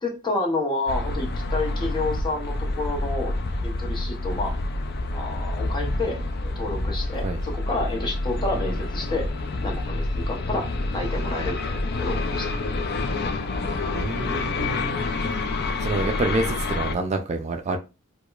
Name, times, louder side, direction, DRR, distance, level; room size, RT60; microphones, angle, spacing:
voice 1, 0.0-3.3 3.6-4.5 5.1-9.3 9.6-12.5, left 2 dB, 20° left, 0.8 m, -29 dB
sound 1, 0.9-17.0, left 2 dB, 50° left, 0.4 m, -28 dB
voice 2, 13.9-15.0 15.8-17.8, right 2 dB, 35° right, 0.3 m, -27 dB
4.7 x 2.2 x 2.3 m
head